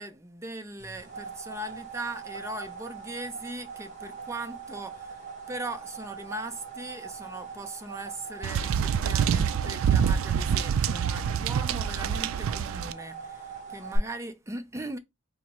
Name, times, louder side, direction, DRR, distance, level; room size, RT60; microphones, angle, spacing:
voice 1, 0.0-15.0, right 2 dB, 15° right, 0.5 m, -39 dB
sound 1, 0.8-14.0, right 5 dB, 40° right, 1.4 m, -42 dB
sound 2, 8.4-12.9, right 8 dB, 80° right, 0.3 m, -26 dB
3.8 x 2.0 x 4.3 m
head